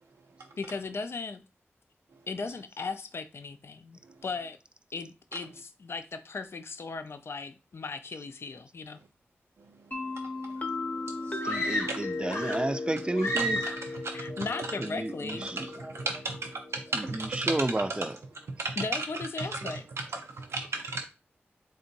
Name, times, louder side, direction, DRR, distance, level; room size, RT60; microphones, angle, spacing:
voice 1, 0.6-1.4 2.3-4.6 4.9-9.0 14.1-15.5 18.8-19.8, left 4 dB, 65° left, 0.4 m, -37 dB
sound 1, 9.9-17.6, left 2 dB, 40° left, 0.7 m, -38 dB
voice 2, 9.9-11.5 11.9-12.0 13.4-13.7 14.0-14.4 15.6-17.8 18.6-18.7 20.1-21.1, right 3 dB, 80° right, 0.4 m, -36 dB
sound 2, 11.4-12.8 13.2-14.0, equal, 85° left, 0.8 m, -32 dB
voice 3, 11.4-13.6 14.3-14.4 14.8-15.9 16.9-18.2, right 1 dB, 20° right, 0.4 m, -32 dB
3.5 x 2.7 x 4.0 m
cardioid pair, 45°, 5 cm